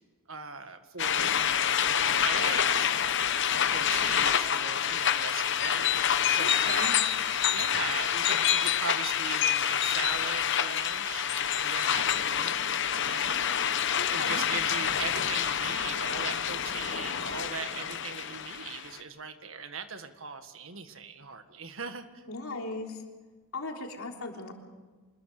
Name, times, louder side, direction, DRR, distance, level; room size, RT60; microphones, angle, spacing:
voice 1, 0.3-2.9 3.5-6.0 6.3-6.9 7.5-13.7 14.1-22.2, right 5 dB, 65° right, 8 dB, 1.8 m, -40 dB
sound 1, 1.0-19.0, left 9 dB, 55° left, 1.0 m, -27 dB
voice 2, 6.4-6.9 14.0-14.5 22.3-23.0 23.5-24.5, left 2 dB, 75° left, 2 dB, 3.4 m, -38 dB
25.5 x 21.0 x 6.7 m, 1.4 s
head